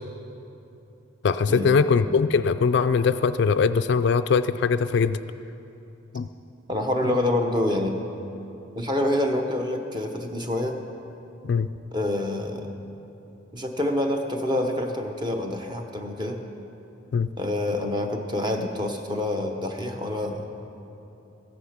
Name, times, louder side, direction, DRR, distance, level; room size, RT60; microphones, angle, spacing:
voice 1, 1.2-5.2 6.1-6.3 7.0-7.1 11.4-11.7 17.1-17.3, left 5 dB, 55° left, 12 dB, 0.3 m, -21 dB
voice 2, 6.7-8.0 8.8-10.8 11.9-12.7 13.5-16.4 17.4-20.5, left 1 dB, 20° right, 4 dB, 0.8 m, -27 dB
14.5 x 9.8 x 5.8 m, 2.9 s
head